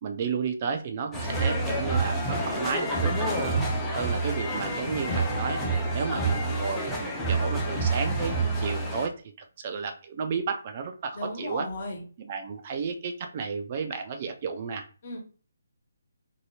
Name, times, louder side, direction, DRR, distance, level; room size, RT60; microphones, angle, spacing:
voice 1, 0.0-3.6 3.9-5.6 5.9-9.1 9.6-11.7 12.2-14.9, right 5 dB, 35° right, 6 dB, 0.4 m, -32 dB
sound 1, 1.1-9.1, right 2 dB, 10° left, 0.6 m, -28 dB
sound 2, 4.6-8.6, left 1 dB, 65° left, 1.1 m, -46 dB
voice 2, 11.1-12.0 15.0-15.2, left 1 dB, 45° left, 1 dB, 1.1 m, -35 dB
2.9 x 2.8 x 2.7 m, 0.38 s
figure-of-eight pair, 145°, 0 cm